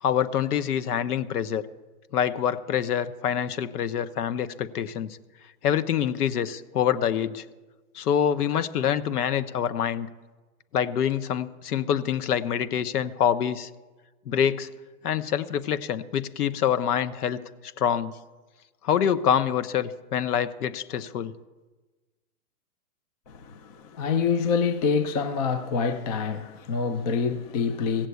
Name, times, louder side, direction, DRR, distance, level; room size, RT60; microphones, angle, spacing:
voice 1, 0.0-1.7 2.1-5.2 5.6-7.4 7.9-10.1 10.7-13.7 14.3-14.7 15.0-17.4 17.8-18.2 18.8-21.3, left 9 dB, 80° left, 1.0 m, -26 dB
voice 2, 23.3-28.1, left 5 dB, 30° left, 0.4 m, -26 dB
16.0 x 7.5 x 8.1 m
hypercardioid pair, 140°, 45 cm